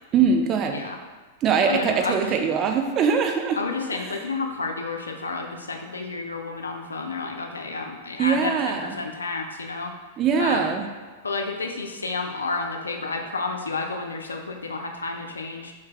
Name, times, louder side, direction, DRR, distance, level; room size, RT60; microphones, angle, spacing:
voice 1, 0.1-0.8 1.4-3.6 8.2-9.0 10.2-10.8, right 6 dB, 35° right, 5 dB, 0.4 m, -22 dB
voice 2, 1.7-2.4 3.6-9.9 10.4-10.8 11.2-15.7, left 3 dB, 80° left, 3 dB, 0.4 m, -30 dB
2.8 x 2.8 x 3.5 m, 1.4 s
figure-of-eight pair, 100°, 0 cm